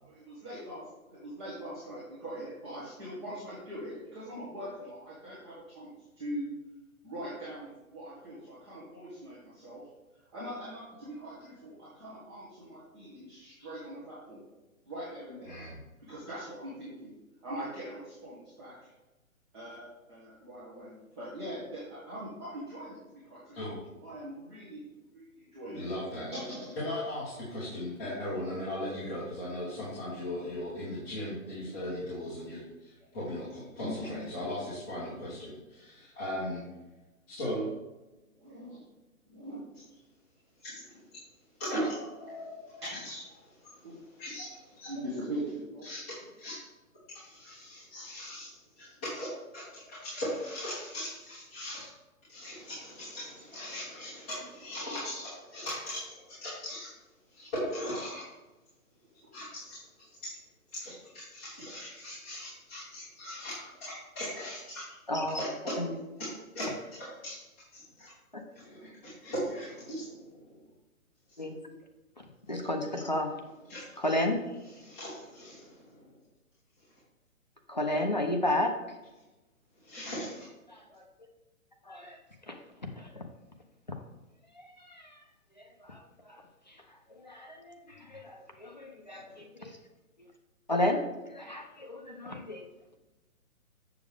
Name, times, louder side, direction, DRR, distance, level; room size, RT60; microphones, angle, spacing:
voice 1, 0.0-5.9 6.2-6.5 7.0-9.9 10.3-14.4 14.8-15.5 16.0-17.1 17.4-18.9 19.5-23.6 24.0-24.9 25.1-25.8 26.3-26.8 33.8-34.1 38.4-38.8 39.3-39.6 42.8-43.0 43.8-44.0 44.9-45.8, equal, 20° right, -12 dB, 1.8 m, -42 dB
voice 2, 15.4-15.8 23.5-23.8 25.7-26.3 26.8-36.6 37.3-37.7 41.6-43.9 44.2-44.9 45.8-46.0 46.4-46.6 47.2-51.9 52.3-56.9 57.3-58.2 59.3-60.1 60.7-64.8 65.4-65.5 66.5-67.3 67.7-68.1 68.5-68.9 69.2-70.6 72.5-72.7 73.7-73.8 74.7-76.1 79.9-80.4 89.1-89.3, equal, 10° left, -13 dB, 1.1 m, -38 dB
voice 3, 65.1-65.4 65.8-66.0 71.4-71.6 72.5-73.3 74.0-74.4 77.7-78.7 80.7-81.1 81.9-82.2 82.5-82.6 83.0-83.3 84.5-85.2 85.6-86.4 86.7-86.8 87.1-89.8 90.7-92.7, left 1 dB, 35° left, 3 dB, 0.5 m, -33 dB
7.1 x 6.9 x 3.5 m, 1.1 s
hypercardioid pair, 175°, 42 cm